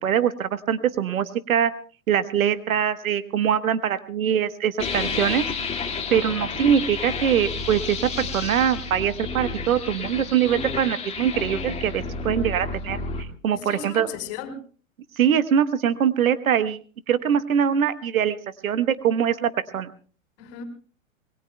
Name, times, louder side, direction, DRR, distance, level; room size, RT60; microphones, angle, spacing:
voice 1, 0.0-1.7 2.1-5.4 6.1-14.1 15.2-16.8 17.1-18.4 18.6-19.9, right 9 dB, 80° right, 12 dB, 1.3 m, -23 dB
sound 1, 4.8-13.2, left 4 dB, 15° left, 2.0 m, -31 dB
voice 2, 13.5-14.6 20.4-20.6, left 6 dB, 45° left, 5 dB, 4.3 m, -35 dB
27.0 x 21.0 x 2.2 m, 0.40 s
hypercardioid pair, 115°, 41 cm